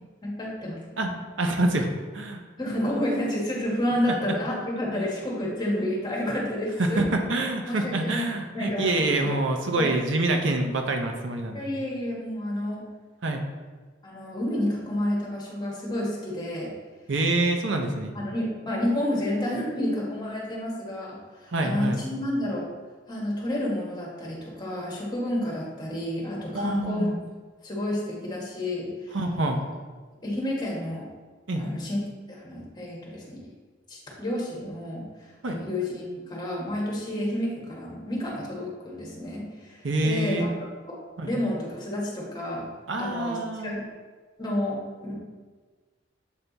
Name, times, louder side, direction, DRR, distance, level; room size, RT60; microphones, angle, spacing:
voice 1, 0.2-0.8 2.6-7.0 7.7-8.3 8.5-9.4 9.8-9.9 11.5-12.8 14.0-16.7 18.1-22.7 23.1-27.1 27.6-29.2 30.2-31.0 31.6-32.0 32.3-33.5 33.9-40.9 41.2-42.7 42.9-43.4 43.6-43.8 44.4-45.1, left 1 dB, 25° left, -3 dB, 1.5 m, -30 dB
voice 2, 1.4-2.4 4.1-4.4 4.9-5.1 6.8-11.7 13.2-13.4 17.1-18.2 21.5-22.0 26.5-27.1 29.1-29.6 31.5-31.7 35.4-35.6 39.8-40.5 41.2-41.3 42.9-43.8, right 2 dB, 70° right, 4 dB, 0.7 m, -26 dB
7.3 x 3.4 x 4.0 m, 1.4 s
head